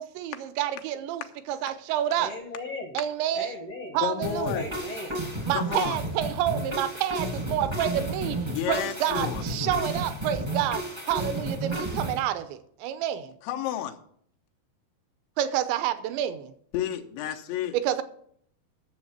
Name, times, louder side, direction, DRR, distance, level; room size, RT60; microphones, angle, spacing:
voice 1, 0.0-2.4 2.9-3.6 3.9-4.7 5.5-13.3 15.4-16.5 17.7-18.0, right 11 dB, 85° right, 3.0 m, -29 dB
voice 2, 2.2-3.0 3.3-4.0 4.5-5.2, left 2 dB, 70° left, 1.5 m, -37 dB
voice 3, 4.0-4.7 5.5-6.0 8.5-9.4 13.5-14.0 16.7-17.8, left 10 dB, 90° left, 3.2 m, -31 dB
sound 1, 4.2-12.2, right 1 dB, 30° right, 0.5 m, -32 dB
11.0 x 7.3 x 5.7 m
omnidirectional pair, 5.1 m